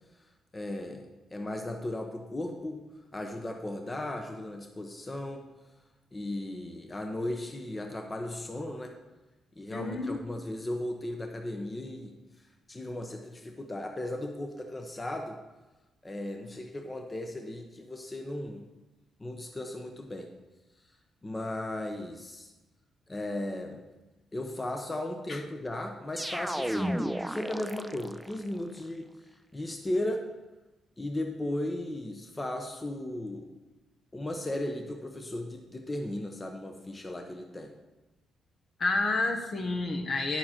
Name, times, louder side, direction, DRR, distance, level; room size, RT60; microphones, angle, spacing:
voice 1, 0.5-2.8 3.1-5.4 6.1-8.9 9.6-12.1 12.7-15.4 16.0-18.7 19.2-20.3 21.2-22.5 23.1-23.8 24.3-29.1 29.5-30.2 31.0-33.5 34.1-37.7, left 1 dB, 20° left, 3 dB, 0.9 m, -36 dB
voice 2, 9.7-10.2 25.3-25.4 38.8-40.4, left 3 dB, 50° left, 3 dB, 1.2 m, -29 dB
sound 1, 26.2-28.4, equal, 5° right, 0.4 m, -33 dB
9.8 x 7.3 x 4.4 m, 1.1 s
cardioid pair, 90°, 0 cm